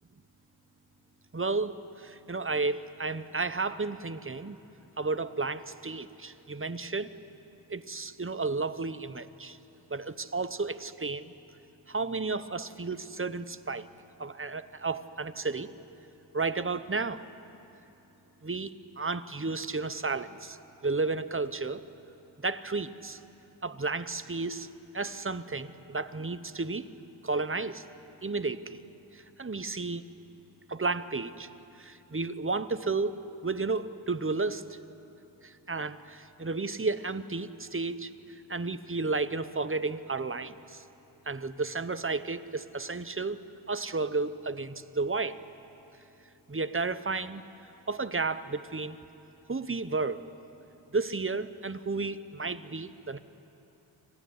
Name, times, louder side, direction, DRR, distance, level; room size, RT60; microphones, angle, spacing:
voice 1, 1.3-1.7 2.0-4.6 5.0-7.1 7.7-9.6 9.9-11.3 11.9-13.9 14.2-15.7 16.3-17.2 18.4-18.7 19.0-20.6 20.8-21.8 22.4-23.2 23.6-24.7 24.9-26.8 27.2-27.8 28.2-28.8 29.4-30.0 30.7-31.5 31.8-34.6 35.7-38.1 38.5-40.5 41.3-43.4 43.7-45.4 46.5-47.4 47.9-49.0 49.5-50.2 50.9-53.2, right 3 dB, 25° right, 12 dB, 0.8 m, -32 dB
26.0 x 15.5 x 9.6 m, 2.9 s
wide cardioid pair, 45°, 48 cm